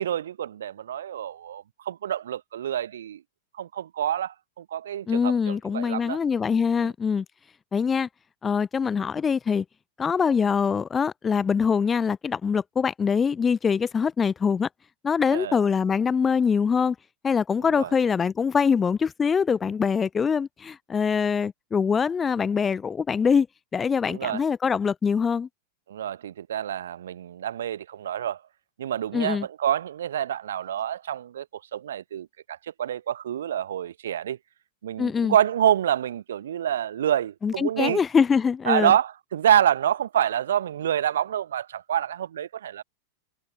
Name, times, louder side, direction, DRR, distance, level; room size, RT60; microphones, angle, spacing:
voice 1, 0.0-3.2 3.6-6.2 6.8-6.9 15.3-15.6 17.8-17.9 24.0-24.4 25.9-28.4 28.8-34.4 34.8-38.0 38.7-42.8, right 10 dB, 60° right, 1.2 m, -27 dB
voice 2, 5.1-7.2 7.7-8.1 8.4-9.6 10.0-14.7 15.0-17.0 17.2-23.5 23.7-25.5 29.1-29.5 35.0-35.3 37.4-38.9, left 6 dB, 20° left, 0.6 m, -23 dB
figure-of-eight pair, 90°, 0 cm